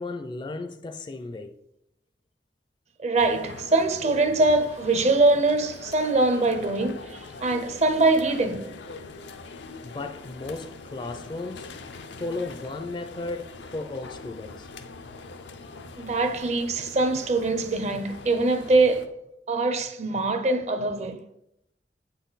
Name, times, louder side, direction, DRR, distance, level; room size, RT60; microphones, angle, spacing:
voice 1, 0.0-1.6 9.8-11.7 12.2-14.7, left 2 dB, 25° left, 0.4 m, -35 dB
voice 2, 3.0-8.7 16.0-19.1 19.5-21.2, right 2 dB, 40° right, 0.5 m, -23 dB
sound 1, 3.2-19.1, left 3 dB, 85° left, 0.6 m, -43 dB
8.2 x 4.1 x 4.0 m
head